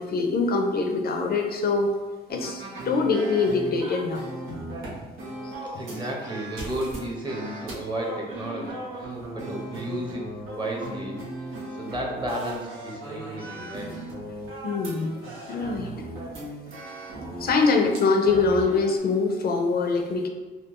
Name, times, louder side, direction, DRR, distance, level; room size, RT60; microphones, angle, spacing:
voice 1, 0.0-1.9 2.3-4.6 5.4-5.5 14.6-15.2 15.5-16.1 17.4-20.3, left 4 dB, 50° left, 3 dB, 0.4 m, -24 dB
sound 1, 2.3-19.0, right 1 dB, 85° right, 1.1 m, -37 dB
voice 2, 5.8-14.0, right 1 dB, 25° right, -1 dB, 0.9 m, -33 dB
4.2 x 2.3 x 3.0 m, 1.3 s
cardioid pair, 90°, 20 cm